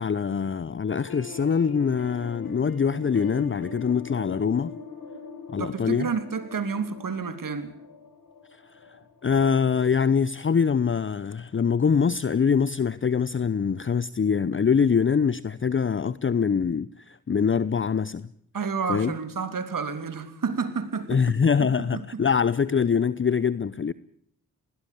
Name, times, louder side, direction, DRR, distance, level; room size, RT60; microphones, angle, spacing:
voice 1, 0.0-4.8 5.5-6.1 8.7-18.3 18.9-19.1 21.1-23.9, left 6 dB, 30° left, 0.8 m, -24 dB
sound 1, 0.9-10.8 11.1-11.3 11.6-11.7 12.1-12.2, left 4 dB, 60° left, 5.0 m, -42 dB
voice 2, 5.6-7.8 18.5-21.2 21.6-22.2, right 5 dB, 55° right, 3.3 m, -30 dB
21.0 x 17.5 x 8.6 m
hypercardioid pair, 40°, 40 cm